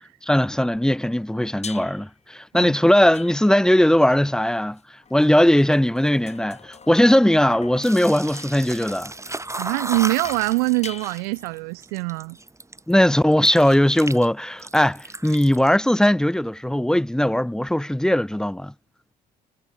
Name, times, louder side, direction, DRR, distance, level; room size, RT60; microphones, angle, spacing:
voice 1, 0.2-4.8 5.1-9.1 12.9-18.7, left 1 dB, 5° left, 0.7 m, -19 dB
sound 1, 1.6-2.2 3.1-3.8 4.8-11.6, left 5 dB, 30° left, 5.7 m, -43 dB
sound 2, 7.8-12.9 13.3-14.3 14.5-15.7, right 2 dB, 15° right, 3.6 m, -35 dB
voice 2, 9.6-12.4, right 34 dB, 65° right, 0.7 m, -24 dB
figure-of-eight pair, 50°, 21 cm